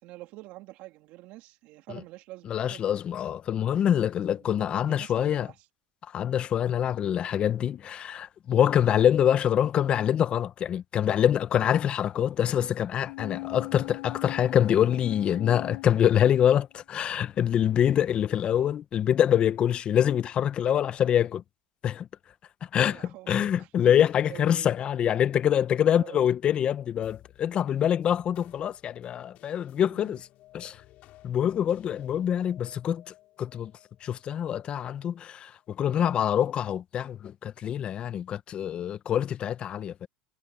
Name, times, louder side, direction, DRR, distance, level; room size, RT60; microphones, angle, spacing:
voice 1, 0.0-2.9 3.9-5.6 22.8-23.7 24.3-24.7 25.9-26.3 29.8-30.2, right 18 dB, 65° right, 2.8 m, -47 dB
voice 2, 2.5-5.5 6.1-21.4 21.8-22.1 22.7-30.3 30.5-30.8 31.2-33.7 34.0-40.1, left 9 dB, 40° left, 1.0 m, -25 dB
sound 1, 13.0-16.8 17.2-17.3, left 21 dB, 85° left, 0.5 m, -40 dB
sound 2, 27.0-35.7, left 16 dB, 55° left, 6.3 m, -57 dB
supercardioid pair, 105°, 3 cm